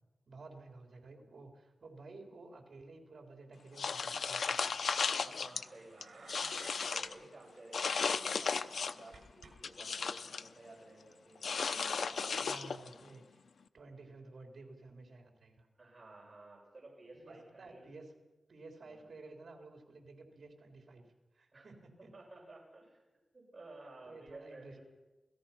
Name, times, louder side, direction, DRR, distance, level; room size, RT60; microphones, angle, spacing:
voice 1, 0.3-4.7 12.4-13.4 13.7-15.7 17.1-18.0 18.5-21.0 21.3-22.1 24.1-24.7, right 3 dB, 60° right, 2 dB, 3.8 m, -53 dB
sound 1, 3.8-5.6 6.0-7.1 7.7-9.1 9.4-10.5 11.4-12.9, left 5 dB, 85° left, 0.7 m, -35 dB
voice 2, 4.9-12.7 15.8-17.9 18.9-19.1 21.5-21.7 22.0-23.0 23.3-24.8, right 2 dB, 30° right, -3 dB, 7.8 m, -55 dB
sound 2, 5.5-7.1 7.4-7.6 7.9-9.5 9.8-10.2 12.0-12.1, right 4 dB, 75° right, 6.2 m, -56 dB
27.0 x 17.5 x 5.9 m, 1.1 s
wide cardioid pair, 160°, 0 cm